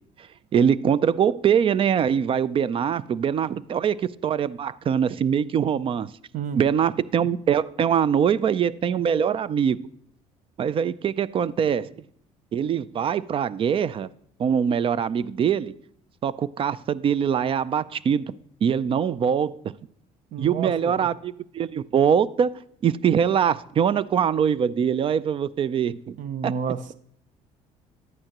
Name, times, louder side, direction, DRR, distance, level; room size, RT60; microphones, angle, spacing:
voice 1, 0.5-6.1 6.5-9.8 10.6-11.9 12.5-14.1 14.4-15.7 16.2-18.3 18.6-19.6 20.4-26.2 26.4-26.5, right 8 dB, 40° right, 0.4 m, -23 dB
voice 2, 20.3-21.1 26.2-26.9, right 7 dB, 60° right, 0.7 m, -30 dB
10.5 x 8.9 x 2.9 m
supercardioid pair, 90°, 15 cm